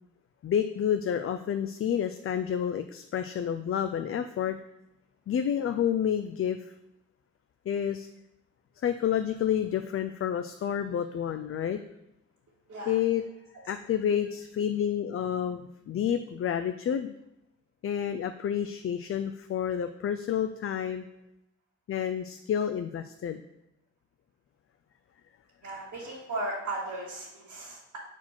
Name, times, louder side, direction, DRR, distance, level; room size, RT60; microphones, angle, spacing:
voice 1, 0.4-4.6 5.3-6.6 7.7-8.1 8.8-11.8 12.9-13.2 13.6-17.1 17.8-21.0 21.9-23.4, left 9 dB, 45° left, 9 dB, 0.4 m, -29 dB
voice 2, 25.6-28.0, right 2 dB, 70° right, -6 dB, 1.9 m, -36 dB
4.4 x 4.3 x 5.8 m, 0.88 s
cardioid pair, 70°, 30 cm